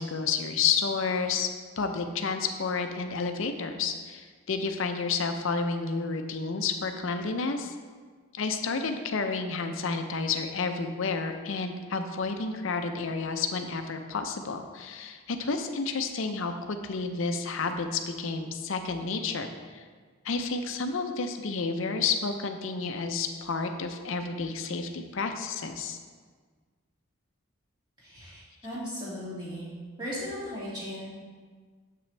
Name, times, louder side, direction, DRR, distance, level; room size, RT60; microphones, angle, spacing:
voice 1, 0.0-1.5 1.8-7.8 8.3-19.5 19.7-19.8 20.2-26.0, left 4 dB, 65° left, 7 dB, 0.5 m, -30 dB
voice 2, 28.0-29.7 30.0-31.1, equal, 20° right, -9 dB, 2.1 m, -37 dB
7.6 x 5.9 x 3.2 m, 1.5 s
head